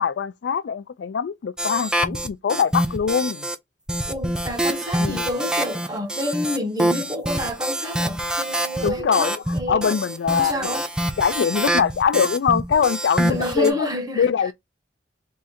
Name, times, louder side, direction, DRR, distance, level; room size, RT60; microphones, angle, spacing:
voice 1, 0.0-3.5 5.0-5.3 8.8-10.8 11.2-13.9 14.1-14.5, left 6 dB, 85° left, 0.4 m, -23 dB
sound 1, 1.6-3.6 3.9-13.7, right 1 dB, 5° right, 0.4 m, -26 dB
voice 2, 4.1-10.0 10.3-10.9 13.2-14.3, left 1 dB, 20° right, 1.0 m, -29 dB
3.7 x 2.6 x 4.1 m
head